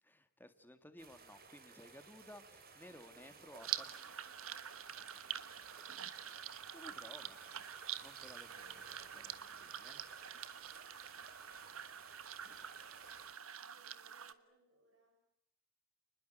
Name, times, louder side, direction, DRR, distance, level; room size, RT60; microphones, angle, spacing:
voice 1, 0.0-3.8 6.7-7.6 8.0-10.0, left 1 dB, 10° left, 9 dB, 2.1 m, -57 dB
sound 1, 1.0-13.3, right 5 dB, 45° right, 4.2 m, -58 dB
voice 2, 2.9-6.4 8.5-9.4 13.7-15.2, right 2 dB, 65° right, -1 dB, 7.0 m, -70 dB
sound 2, 3.6-14.3, right 10 dB, 85° right, 1.4 m, -46 dB
30.0 x 21.0 x 9.0 m, 0.73 s
head